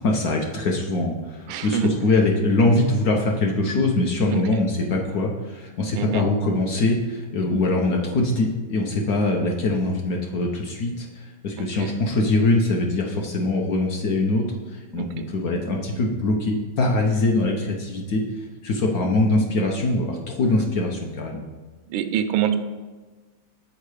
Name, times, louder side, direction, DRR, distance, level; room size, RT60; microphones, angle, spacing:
voice 1, 0.0-21.4, left 2 dB, 60° left, 1 dB, 1.0 m, -23 dB
voice 2, 1.5-1.9 4.3-4.6 5.9-6.3 11.6-11.9 14.9-15.3 20.4-20.7 21.9-22.6, right 10 dB, 90° right, 9 dB, 1.4 m, -27 dB
6.6 x 4.5 x 4.8 m, 1.3 s
omnidirectional pair, 2.1 m